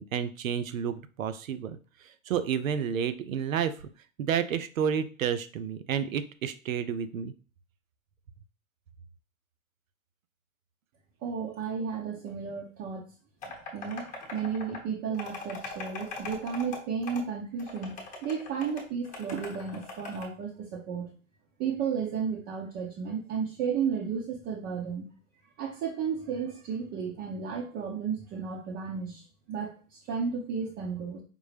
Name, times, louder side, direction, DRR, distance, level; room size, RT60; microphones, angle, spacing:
voice 1, 0.0-1.8 2.0-3.7 4.2-7.3, right 8 dB, 80° right, 11 dB, 0.6 m, -30 dB
voice 2, 11.2-13.0 13.7-14.0 14.3-17.9 18.2-21.1 21.6-25.1 25.6-29.2 29.5-31.2, right 6 dB, 30° right, -1 dB, 0.7 m, -33 dB
sound 1, 13.4-14.8 15.1-16.8 17.0-17.2 17.6-20.2, left 3 dB, 20° left, 1.0 m, -41 dB
5.1 x 2.1 x 3.3 m, 0.37 s
hypercardioid pair, 115°, 40 cm